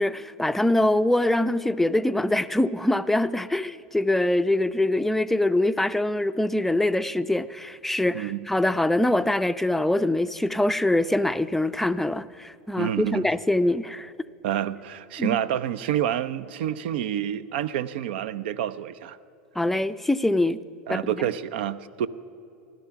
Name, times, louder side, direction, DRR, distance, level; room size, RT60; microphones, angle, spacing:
voice 1, 0.0-14.1 15.2-15.4 19.6-20.6 20.9-21.2, left 1 dB, 5° left, 0.4 m, -24 dB
voice 2, 8.1-8.5 12.8-13.3 14.4-19.2 20.9-22.1, right 10 dB, 70° right, 0.5 m, -28 dB
15.5 x 12.0 x 5.8 m
hypercardioid pair, 100°, 6 cm